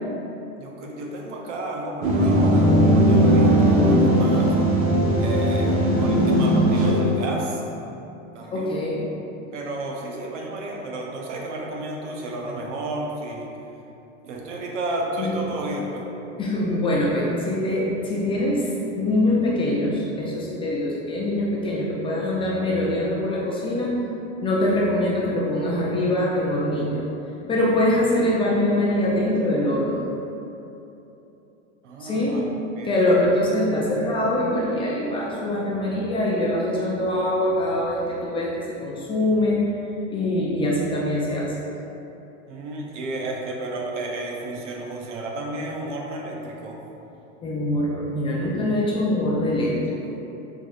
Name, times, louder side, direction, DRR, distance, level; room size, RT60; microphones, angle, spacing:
voice 1, 0.6-4.5 5.2-7.6 8.3-8.7 9.5-13.5 14.2-16.0 31.8-33.2 42.5-46.8, right 2 dB, 85° right, 0 dB, 0.9 m, -32 dB
sound 1, 2.0-7.3, equal, 40° right, 1.0 m, -18 dB
voice 2, 4.1-4.5 8.5-9.0 15.2-15.5 16.4-18.7 19.0-24.0 24.4-27.0 27.5-30.0 32.0-32.5 32.8-39.7 40.1-41.6 47.4-50.1, left 1 dB, 15° left, -5 dB, 0.3 m, -23 dB
5.8 x 3.4 x 2.4 m, 3.0 s
supercardioid pair, 125°, 35 cm